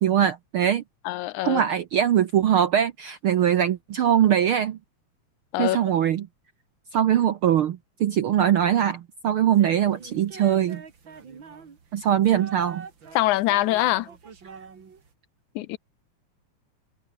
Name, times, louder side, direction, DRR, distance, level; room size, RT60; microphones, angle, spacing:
voice 1, 0.0-0.8 1.4-4.8 5.6-6.3 6.9-10.8 11.9-12.8, right 10 dB, 70° right, 1.3 m, -22 dB
voice 2, 1.1-1.6 5.5-5.8 13.2-14.1 15.6-15.8, left 17 dB, 80° left, 2.1 m, -23 dB
sound 1, 9.5-15.1, right 6 dB, 40° right, 2.9 m, -44 dB
omnidirectional pair, 3.5 m